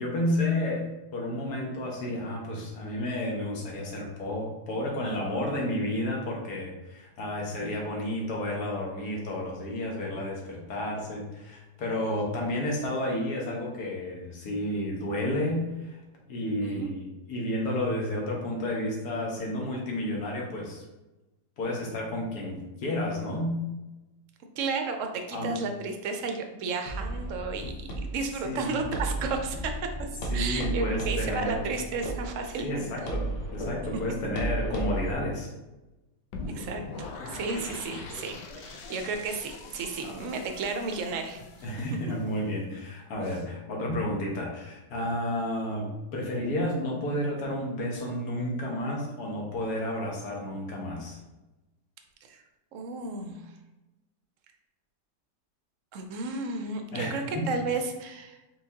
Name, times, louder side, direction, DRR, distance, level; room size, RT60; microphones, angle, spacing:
voice 1, 0.0-16.0 16.3-20.8 21.6-23.6 25.3-25.6 27.3-27.4 28.4-28.8 30.3-31.6 32.6-35.5 40.0-40.2 41.6-51.2 56.9-57.5, left 1 dB, 70° left, -1 dB, 1.6 m, -31 dB
voice 2, 24.6-29.7 30.3-32.9 36.5-41.4 52.3-52.4 52.7-53.5 55.9-58.4, right 4 dB, 65° right, 5 dB, 0.8 m, -33 dB
sound 1, 26.9-35.1, right 2 dB, 55° left, 1.0 m, -34 dB
sound 2, 36.3-42.4, left 3 dB, 85° left, 1.2 m, -42 dB
4.6 x 3.8 x 2.7 m, 1.0 s
omnidirectional pair, 1.8 m